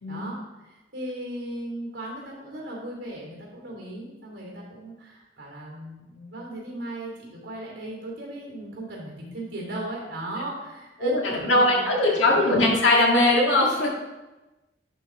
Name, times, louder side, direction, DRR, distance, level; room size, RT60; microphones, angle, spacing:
voice 1, 0.1-12.9, right 1 dB, 80° right, -2 dB, 2.7 m, -37 dB
voice 2, 11.0-13.9, left 2 dB, 85° left, -2 dB, 1.8 m, -20 dB
10.5 x 4.1 x 3.6 m, 1.1 s
head